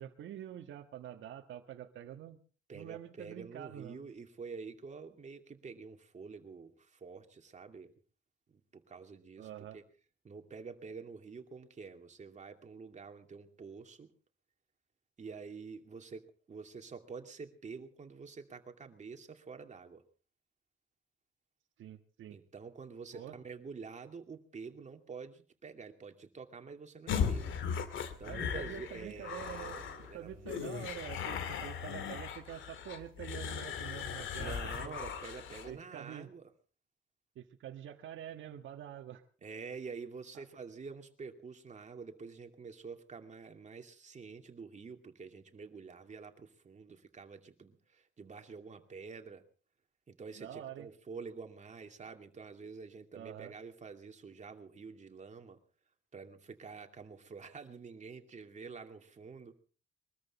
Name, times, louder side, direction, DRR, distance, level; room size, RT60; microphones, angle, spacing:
voice 1, 0.0-2.4 2.7-4.0 9.4-9.8 21.8-22.4 23.1-23.4 28.2-35.0 35.7-36.3 37.3-39.2 40.3-40.4 50.3-50.9 53.1-53.5, right 11 dB, 75° right, 4 dB, 1.5 m, -46 dB
voice 2, 2.7-7.9 8.5-9.8 10.2-14.1 15.2-20.0 22.3-27.6 28.1-30.6 34.4-36.5 39.4-49.4 50.1-55.6 56.1-59.5, right 5 dB, 35° right, 5 dB, 2.5 m, -48 dB
sound 1, 27.1-35.7, left 7 dB, 75° left, 2.2 m, -38 dB
23.0 x 14.0 x 4.3 m, 0.39 s
cardioid pair, 90°, 20 cm